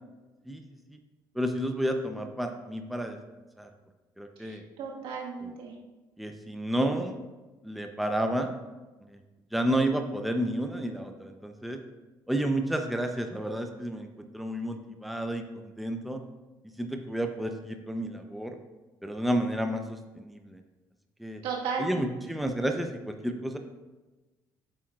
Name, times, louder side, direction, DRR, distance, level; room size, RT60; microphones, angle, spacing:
voice 1, 1.4-3.2 3.6-3.7 4.2-4.6 5.4-5.5 6.2-7.2 7.6-8.5 9.5-11.8 12.3-14.1 14.3-16.2 16.8-18.6 19.0-20.6 21.2-21.4 21.8-23.6, right 1 dB, ahead, 5 dB, 0.7 m, -31 dB
voice 2, 4.4-5.7 21.4-22.1, right 5 dB, 75° right, -2 dB, 1.7 m, -35 dB
8.5 x 7.2 x 2.5 m, 1.2 s
hypercardioid pair, 60°, 9 cm